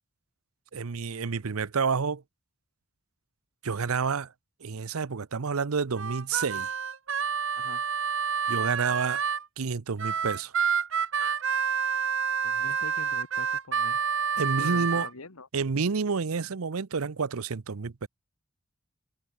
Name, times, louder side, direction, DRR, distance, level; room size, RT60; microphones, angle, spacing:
voice 1, 0.7-2.2 3.6-4.3 4.6-6.7 8.5-9.2 9.6-10.5 14.4-15.1 15.5-18.1, right 5 dB, 85° right, 0.7 m, -29 dB
Harmonica, 6.0-9.4 10.0-15.1, right 6 dB, 60° right, 1.1 m, -28 dB
voice 2, 12.4-14.0 14.5-15.5, left 3 dB, 90° left, 2.0 m, -44 dB
head